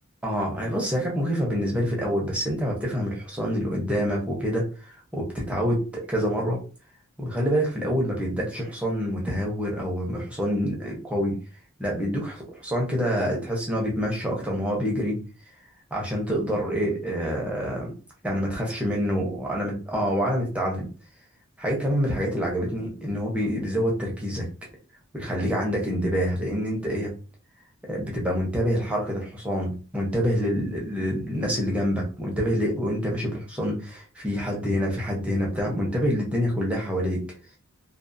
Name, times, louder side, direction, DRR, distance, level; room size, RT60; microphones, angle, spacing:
voice 1, 0.2-6.6 7.2-11.4 11.8-15.2 15.9-17.9 18.2-20.9 21.6-24.5 25.1-27.1 27.9-37.3, equal, 5° right, -2 dB, 0.6 m, -26 dB
2.4 x 2.3 x 2.5 m, 0.36 s
head